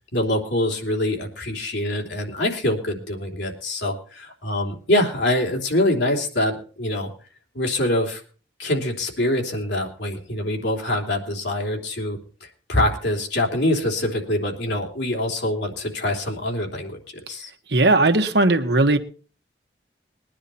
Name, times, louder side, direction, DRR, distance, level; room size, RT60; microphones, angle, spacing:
voice 1, 0.1-7.1 7.5-8.2 8.6-17.5, left 1 dB, 85° left, 1 dB, 3.4 m, -24 dB
voice 2, 17.7-19.0, right 2 dB, 75° right, 7 dB, 1.4 m, -17 dB
20.5 x 10.0 x 4.3 m, 0.40 s
head